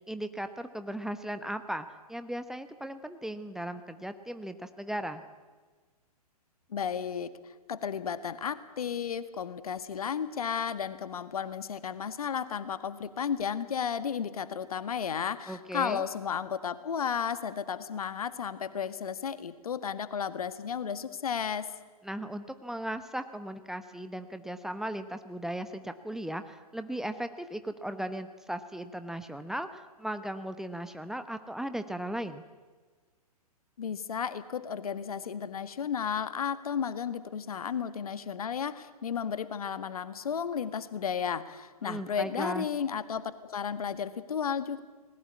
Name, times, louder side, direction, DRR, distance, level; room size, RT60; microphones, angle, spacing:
voice 1, 0.1-5.2 15.5-16.0 22.0-32.4 41.8-42.7, right 1 dB, ahead, 9 dB, 1.0 m, -37 dB
voice 2, 6.7-21.7 33.8-44.8, left 7 dB, 65° left, 12 dB, 1.8 m, -33 dB
30.0 x 20.5 x 8.4 m, 1.4 s
figure-of-eight pair, 115°, 20 cm